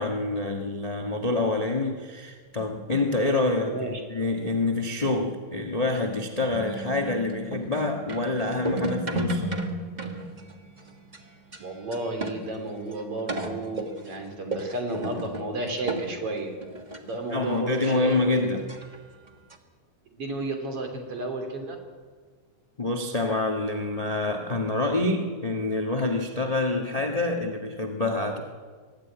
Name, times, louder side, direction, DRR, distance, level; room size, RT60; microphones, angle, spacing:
voice 1, 0.0-9.5 17.3-18.6 22.8-28.4, left 2 dB, 30° left, 2 dB, 0.7 m, -27 dB
voice 2, 3.7-4.0 11.6-16.5 17.0-18.5 20.1-21.8, right 2 dB, 50° right, 4 dB, 3.9 m, -32 dB
sound 1, 6.5-12.7 12.9-13.0 13.3-17.0 17.6-17.7 17.9-18.0 18.7-19.0 19.3-19.5, right 2 dB, 30° right, 0.7 m, -34 dB
23.5 x 14.0 x 9.4 m, 1.5 s
omnidirectional pair, 3.5 m